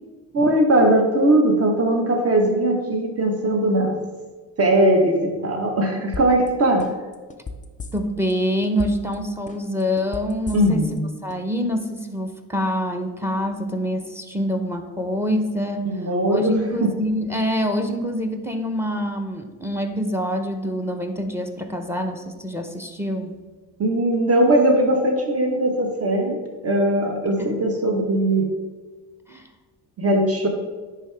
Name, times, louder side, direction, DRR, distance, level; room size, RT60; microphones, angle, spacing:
voice 1, 0.3-3.9 4.6-6.8 10.5-11.1 15.9-16.9 23.8-26.4 26.6-28.5 30.0-30.5, right 1 dB, 40° right, 2 dB, 1.3 m, -19 dB
sound 1, 6.1-6.5 6.8-8.3 8.6-9.1 9.5-11.0 11.3-11.4, left 4 dB, 20° left, 0.7 m, -34 dB
voice 2, 7.9-10.8 11.2-15.9 16.3-23.3 27.4-27.5 29.3-29.5, equal, 5° right, 6 dB, 0.8 m, -25 dB
10.0 x 3.8 x 3.5 m, 1.3 s
supercardioid pair, 70°, 38 cm